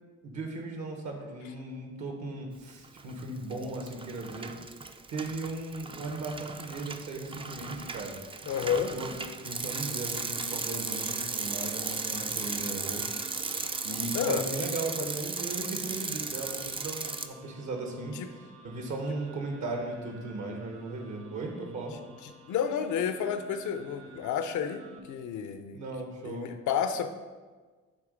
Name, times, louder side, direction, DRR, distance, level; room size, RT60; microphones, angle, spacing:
voice 1, 0.2-4.5 5.1-8.2 8.9-9.1 9.4-13.1 13.8-21.9 25.7-26.5, right 2 dB, 65° right, 2 dB, 1.3 m, -37 dB
Bicycle, 2.8-3.2 3.5-17.3, right 4 dB, 20° right, 0.4 m, -36 dB
voice 2, 8.5-8.9 14.1-14.4 22.2-25.8 26.2-27.1, left 8 dB, 75° left, 9 dB, 0.6 m, -30 dB
sound 1, 10.7-25.0, right 2 dB, 50° right, 1.1 m, -53 dB
8.2 x 3.0 x 5.1 m, 1.4 s
cardioid pair, 90°, 30 cm